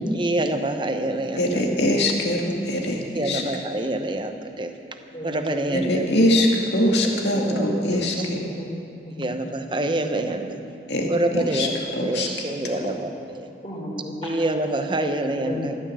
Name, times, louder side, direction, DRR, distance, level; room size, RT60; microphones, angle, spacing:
voice 1, 0.1-1.6 3.0-4.7 5.2-6.2 7.3-8.2 9.2-10.6 11.1-13.5 14.2-15.8, right 1 dB, 25° right, 6 dB, 0.9 m, -26 dB
voice 2, 1.4-3.4 5.7-8.2 10.9-11.1 11.3-11.7 12.0-12.3 12.6-12.8, left 1 dB, 75° left, 0 dB, 2.2 m, -22 dB
voice 3, 5.1-5.6 7.4-8.7 9.1-9.2 10.6-10.7 11.0-11.8 13.6-14.3 15.4-15.8, left 1 dB, 30° left, -3 dB, 3.7 m, -34 dB
14.5 x 12.0 x 7.7 m, 2.5 s
head